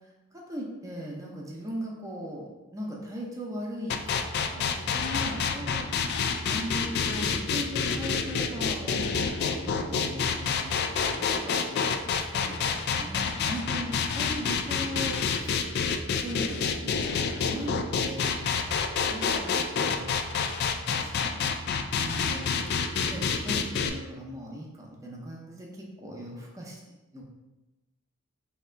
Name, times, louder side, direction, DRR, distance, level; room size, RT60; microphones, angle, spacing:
voice 1, 0.3-5.9 6.5-15.6 16.1-17.2 17.5-18.5 19.1-20.2 20.5-26.8 27.1-27.2, equal, 15° right, -2 dB, 0.6 m, -39 dB
sound 1, 3.9-23.9, left 6 dB, 50° left, 0.3 m, -28 dB
3.3 x 2.9 x 4.3 m, 1.1 s
head